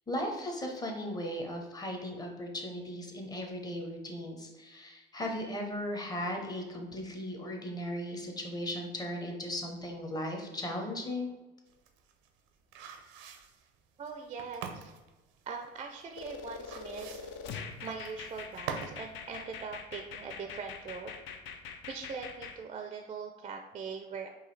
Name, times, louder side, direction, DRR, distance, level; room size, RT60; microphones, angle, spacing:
voice 1, 0.1-11.3, left 1 dB, 20° left, 2 dB, 0.8 m, -37 dB
sound 1, 11.7-19.0 19.3-19.4, right 7 dB, 90° right, 0.5 m, -44 dB
voice 2, 14.0-14.9 15.5-17.2 17.8-21.1 21.9-24.3, right 5 dB, 30° right, 4 dB, 0.4 m, -41 dB
sound 2, 16.1-22.6, left 6 dB, 65° left, 0.5 m, -44 dB
4.7 x 2.7 x 3.2 m, 1.1 s
cardioid pair, 115°, 20 cm